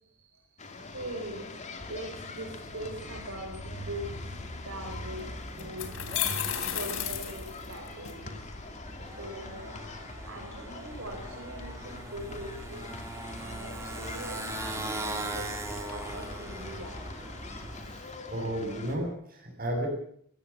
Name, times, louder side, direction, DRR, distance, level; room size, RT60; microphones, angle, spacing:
voice 1, 0.0-1.6 1.9-8.5 9.0-9.8 10.2-12.9 13.4-15.5 15.9-17.0, right 1 dB, 90° right, 1 dB, 4.1 m, -41 dB
sound 1, 0.6-19.0, left 3 dB, 35° left, 2.6 m, -44 dB
Motorcycle, 2.6-18.0, right 1 dB, 15° right, 3.5 m, -41 dB
sound 2, 4.9-5.0 5.6-8.1, left 10 dB, 85° left, 3.5 m, -33 dB
voice 2, 17.8-19.9, right 1 dB, 45° right, 3 dB, 7.9 m, -34 dB
23.5 x 16.0 x 7.4 m, 0.65 s
head